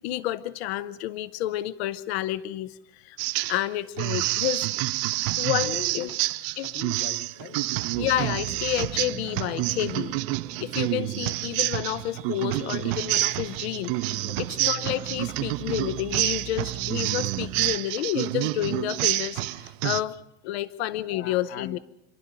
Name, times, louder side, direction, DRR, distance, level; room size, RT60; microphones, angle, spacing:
voice 1, 0.0-3.2 3.5-4.7 5.4-6.1 6.6-6.7 8.0-10.2 10.6-20.2 20.4-21.8, left 13 dB, 75° left, 15 dB, 0.8 m, -30 dB
sound 1, 3.2-3.6 4.0-20.0, right 19 dB, 55° right, 0.8 m, -28 dB
voice 2, 5.6-6.2 6.5-7.7 10.9-11.0 14.1-14.4 21.1-21.8, left 9 dB, 30° left, 11 dB, 1.1 m, -40 dB
sound 2, 7.9-17.8, right 12 dB, 20° right, 1.1 m, -41 dB
28.0 x 11.5 x 9.0 m, 0.84 s
supercardioid pair, 155°, 33 cm